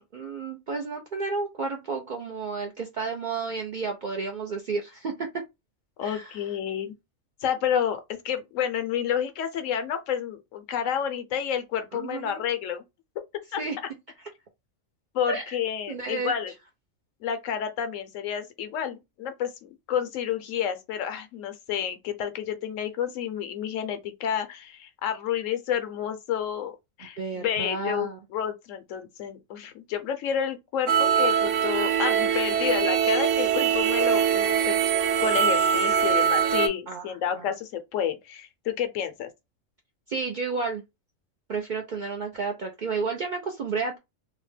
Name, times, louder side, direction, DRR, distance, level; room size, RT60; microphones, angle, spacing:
voice 1, 0.0-5.3 6.0-6.3 11.9-12.4 13.6-13.8 15.3-15.5 15.9-16.3 27.2-28.2 36.9-37.1 37.4-37.5 40.1-40.8 41.5-44.0, right 4 dB, 60° right, 0.5 m, -31 dB
voice 2, 6.0-6.9 7.4-12.8 13.5-13.6 15.1-16.5 17.2-34.8 35.2-39.3, left 9 dB, 75° left, 1.0 m, -30 dB
sound 1, 30.9-36.7, right 8 dB, 75° right, 1.0 m, -23 dB
2.8 x 2.1 x 3.2 m
omnidirectional pair, 1.3 m